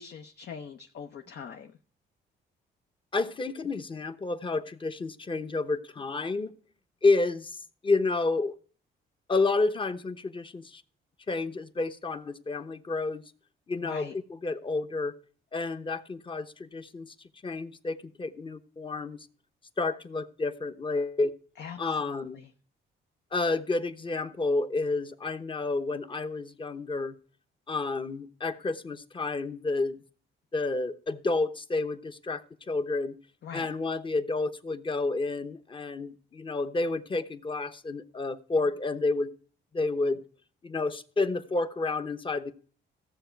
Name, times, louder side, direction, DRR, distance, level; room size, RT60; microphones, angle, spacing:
voice 1, 0.0-1.7 13.8-14.1 21.6-22.5 33.4-33.7, left 7 dB, 60° left, 0.9 m, -42 dB
voice 2, 3.1-6.5 7.0-7.6 7.8-8.5 9.3-10.8 11.3-13.2 13.7-15.1 15.5-17.1 17.4-19.2 19.8-21.3 21.8-22.4 23.3-27.1 27.7-30.0 30.5-32.4 32.7-33.1 33.5-39.3 39.7-40.2 40.6-42.5, left 3 dB, 25° left, 0.9 m, -30 dB
15.5 x 7.0 x 4.6 m
cardioid pair, 90°, 20 cm